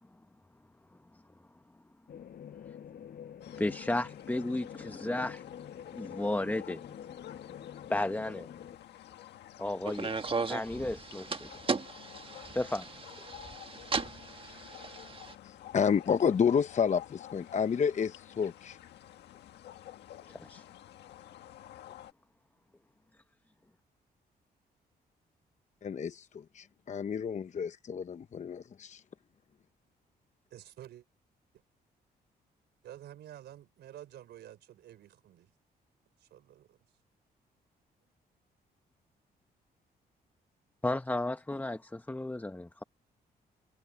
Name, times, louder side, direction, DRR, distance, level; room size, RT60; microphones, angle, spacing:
sound 1, 2.1-8.8, left 9 dB, 65° left, 5.2 m, -46 dB
sound 2, 3.4-22.1, left 12 dB, 85° left, 1.6 m, -51 dB
voice 1, 3.6-5.4 5.9-6.8 7.9-8.5 9.6-10.1 10.5-11.5 12.5-12.9 20.3-20.7 40.8-42.8, left 2 dB, 10° left, 0.8 m, -33 dB
sound 3, 9.8-15.3, right 4 dB, 30° right, 1.6 m, -37 dB
voice 2, 15.4-18.8 25.8-26.3 26.5-29.0, left 7 dB, 45° left, 0.8 m, -30 dB
voice 3, 30.5-31.0 32.8-35.5 36.2-36.8 38.0-38.1, right 12 dB, 85° right, 4.2 m, -50 dB
cardioid pair, 80°, 17 cm